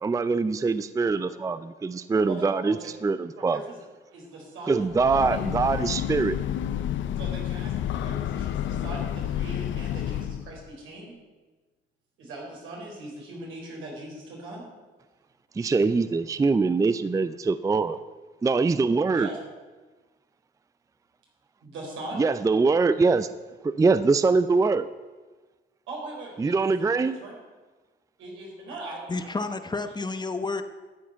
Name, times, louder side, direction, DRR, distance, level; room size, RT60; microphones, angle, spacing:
voice 1, 0.0-2.8 3.0-3.6 4.7-6.4 15.6-18.0 18.4-19.3 22.2-23.3 23.6-24.9 26.4-27.2, right 4 dB, 15° right, 13 dB, 0.4 m, -23 dB
voice 2, 2.3-2.8 3.5-3.8 4.1-4.9 7.2-11.1 12.2-14.6 19.1-19.4 21.6-22.3 25.9-27.3 28.2-29.3, right 2 dB, 85° right, -2 dB, 4.4 m, -40 dB
Breathing / Train, 4.8-10.6, left 10 dB, 75° left, 0.6 m, -30 dB
voice 3, 29.1-30.6, left 3 dB, 20° left, 9 dB, 0.8 m, -30 dB
13.0 x 8.2 x 5.7 m, 1.3 s
cardioid pair, 90°, 20 cm